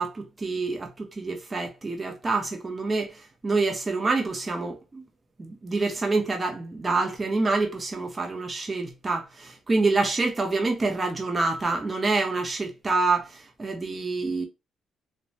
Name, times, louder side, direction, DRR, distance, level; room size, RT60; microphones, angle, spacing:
voice 1, 0.0-5.1 5.4-14.5, right 3 dB, 25° right, 0.6 m, -27 dB
3.0 x 2.1 x 2.7 m
cardioid pair, 90°, 0 cm